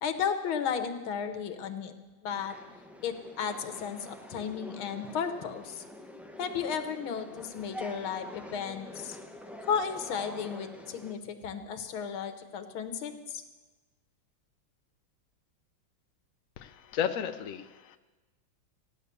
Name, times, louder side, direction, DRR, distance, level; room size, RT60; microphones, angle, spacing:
voice 1, 0.0-1.9 2.2-2.6 3.0-5.8 6.4-9.2 9.6-13.4, left 7 dB, 85° left, 8 dB, 1.9 m, -34 dB
sound 1, 2.3-11.1, left 1 dB, ahead, 0.4 m, -46 dB
voice 2, 16.6-18.0, left 8 dB, 60° left, 8 dB, 0.9 m, -33 dB
15.5 x 10.5 x 6.9 m, 1.2 s
omnidirectional pair, 2.2 m